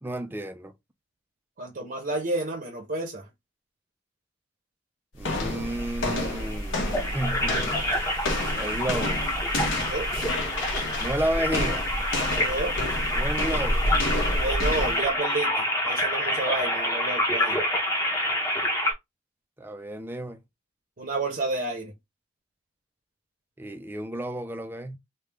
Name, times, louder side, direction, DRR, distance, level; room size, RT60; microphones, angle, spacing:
voice 1, 0.0-0.7 5.1-8.0 8.6-9.2 11.0-11.9 13.1-13.9 19.6-20.4 23.6-25.0, right 1 dB, 10° right, 0.4 m, -32 dB
voice 2, 1.6-3.3 9.8-10.1 12.3-12.8 14.4-17.6 21.0-21.9, right 2 dB, 45° right, 0.8 m, -30 dB
sound 1, 5.2-15.1, left 1 dB, 75° left, 1.2 m, -29 dB
sound 2, 5.6-18.9, left 1 dB, 15° left, 0.8 m, -28 dB
3.5 x 2.3 x 3.4 m
head